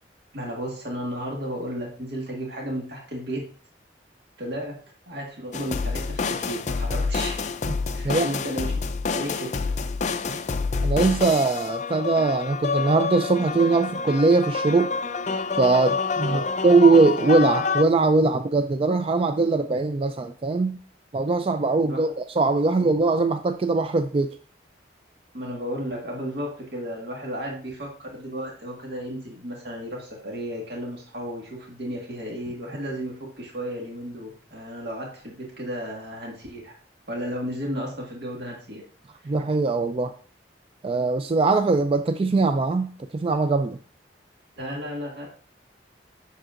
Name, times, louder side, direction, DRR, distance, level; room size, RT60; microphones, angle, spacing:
voice 1, 0.3-3.5 4.4-4.7 5.1-7.5 7.9-8.7 9.1-9.5 10.2-10.4 16.2-16.5 21.8-22.0 22.8-22.9 25.3-36.8 37.1-38.8 39.2-39.3 44.6-45.3, equal, 65° right, -1 dB, 1.7 m, -33 dB
sound 1, 5.5-17.8, left 4 dB, 40° left, 0.4 m, -28 dB
voice 2, 10.8-15.0 15.6-20.8 21.1-24.4 39.3-40.1 40.8-43.8, right 3 dB, 30° right, 8 dB, 0.3 m, -21 dB
7.7 x 6.7 x 2.5 m, 0.43 s
head